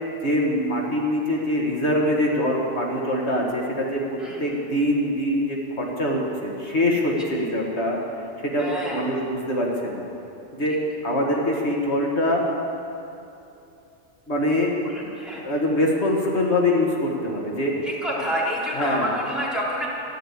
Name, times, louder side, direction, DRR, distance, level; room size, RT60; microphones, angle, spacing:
voice 1, 0.2-8.0 8.4-10.0 10.5-10.7 11.0-12.4 14.3-14.7 15.4-17.7 18.7-19.1, left 1 dB, 70° left, -1 dB, 2.0 m, -24 dB
voice 2, 8.6-9.0 14.8-15.4 17.8-19.9, equal, ahead, -7 dB, 3.5 m, -28 dB
14.0 x 11.5 x 8.5 m, 2.8 s
omnidirectional pair, 1.2 m